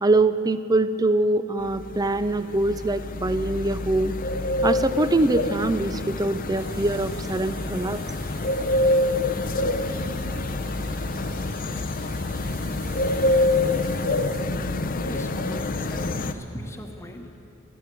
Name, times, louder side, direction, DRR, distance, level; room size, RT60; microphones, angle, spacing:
voice 1, 0.0-4.2 4.6-8.0, right 2 dB, 15° right, 12 dB, 0.4 m, -23 dB
sound 1, 1.7-16.3, left 2 dB, 40° left, 0.6 m, -26 dB
sound 2, 6.6-14.4, right 6 dB, 65° right, 1.8 m, -48 dB
voice 2, 15.0-17.5, left 1 dB, 10° left, 3 dB, 1.1 m, -39 dB
13.5 x 11.0 x 9.2 m, 3.0 s
head